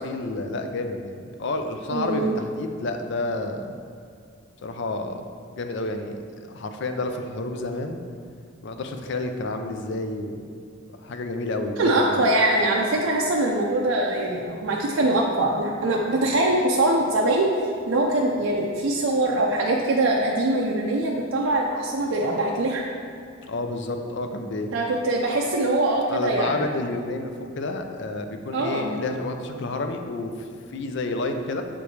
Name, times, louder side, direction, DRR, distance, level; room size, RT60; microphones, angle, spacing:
voice 1, 0.0-3.8 4.6-5.2 5.5-6.2 6.5-8.0 8.6-10.4 10.9-12.2 23.5-24.7 26.1-31.6, left 2 dB, 60° left, 6 dB, 0.5 m, -30 dB
voice 2, 1.9-2.4 11.8-22.9 24.7-26.7 28.5-28.9, right 1 dB, 75° right, -1 dB, 0.5 m, -23 dB
7.0 x 5.1 x 3.2 m, 2.3 s
head